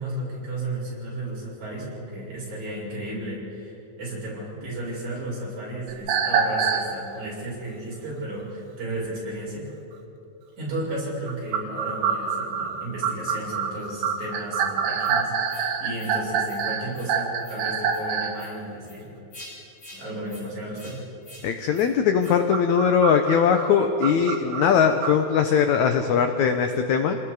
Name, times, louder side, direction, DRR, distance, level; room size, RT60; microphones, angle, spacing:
voice 1, 0.0-9.7 10.6-19.1 19.9-21.0, right 1 dB, 50° right, -6 dB, 8.4 m, -34 dB
sound 1, 5.9-6.9 11.3-18.4 22.3-25.2, right 7 dB, 75° right, 3.4 m, -26 dB
sound 2, 15.0-15.1 15.5-15.7 15.9-16.1 16.4-16.6 16.9-17.1 17.4-17.6 17.9-18.0 18.3-18.5 18.8-19.0 19.3-19.5 19.8-20.0 20.3-20.4 20.7-20.9 21.2-21.4 21.7-21.9 22.2-22.3, left 1 dB, 35° left, 7.8 m, -46 dB
voice 2, 21.4-27.2, left 7 dB, 75° left, 7 dB, 1.7 m, -20 dB
29.0 x 20.0 x 4.8 m, 2.9 s
omnidirectional pair, 4.3 m